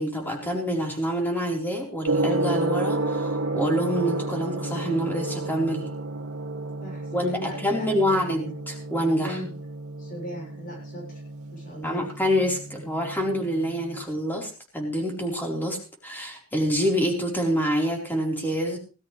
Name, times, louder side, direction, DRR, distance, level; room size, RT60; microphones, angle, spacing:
voice 1, 0.0-5.9 7.1-9.4 11.8-18.8, equal, 10° left, 0 dB, 4.3 m, -26 dB
Gong, 2.0-14.0, right 2 dB, 85° right, 2.2 m, -31 dB
voice 2, 6.8-8.2 9.2-9.5 10.0-11.0 11.5-12.1, equal, 40° left, -1 dB, 7.1 m, -38 dB
18.5 x 13.5 x 3.4 m, 0.35 s
head